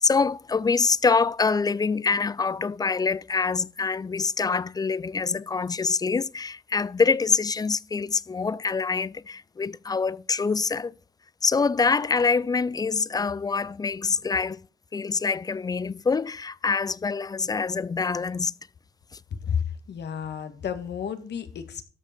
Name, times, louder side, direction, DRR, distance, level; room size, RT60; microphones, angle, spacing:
voice 1, 0.0-10.9 11.4-14.6 14.9-18.5, left 4 dB, 20° left, 0.4 m, -25 dB
voice 2, 19.4-21.8, left 7 dB, 60° left, 1.6 m, -31 dB
13.0 x 5.5 x 4.3 m
cardioid pair, 90°, 20 cm